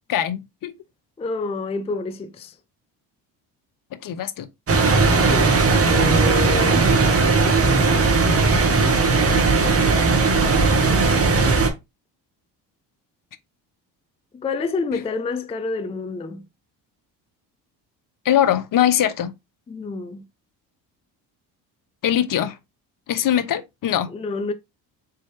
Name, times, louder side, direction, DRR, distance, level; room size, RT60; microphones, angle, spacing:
voice 1, 0.1-0.7 4.0-4.5 18.2-19.3 22.0-22.6 23.1-24.1, left 10 dB, 50° left, 0.7 m, -21 dB
voice 2, 1.2-2.5 5.2-5.5 5.9-6.9 14.3-16.5 19.7-20.3 24.1-24.5, left 3 dB, 15° left, 0.4 m, -28 dB
sound 1, 4.7-11.7, right 3 dB, 30° right, 1.2 m, -17 dB
4.1 x 3.5 x 3.1 m
supercardioid pair, 75°, 44 cm